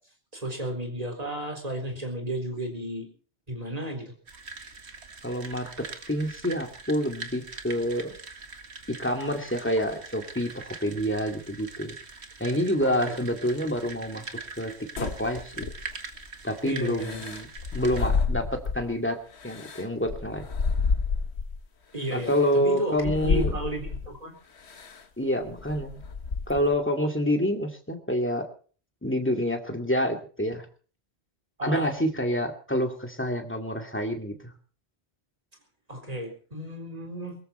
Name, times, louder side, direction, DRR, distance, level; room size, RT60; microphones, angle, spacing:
voice 1, 0.3-3.1 3.5-4.1 12.8-13.2 16.6-17.2 21.9-24.3 31.6-31.9 35.9-37.4, right 1 dB, 35° right, 3 dB, 4.2 m, -33 dB
sound 1, 4.3-18.0, right 4 dB, 80° right, 2.1 m, -43 dB
voice 2, 5.2-5.7 6.1-8.1 8.9-11.9 12.4-14.3 14.6-14.7 15.0-15.7 16.4-17.5 17.7-19.2 19.4-20.5 22.1-23.6 25.2-26.0 26.5-28.4 29.0-30.7 31.6-34.5, equal, 10° left, 4 dB, 2.4 m, -27 dB
sound 2, 15.0-16.1 17.0-18.9 19.4-21.6 22.2-22.4 23.0-24.1 24.7-25.0 25.4-26.8, left 4 dB, 75° left, 1.6 m, -29 dB
22.5 x 14.0 x 4.4 m, 0.42 s
omnidirectional pair, 1.1 m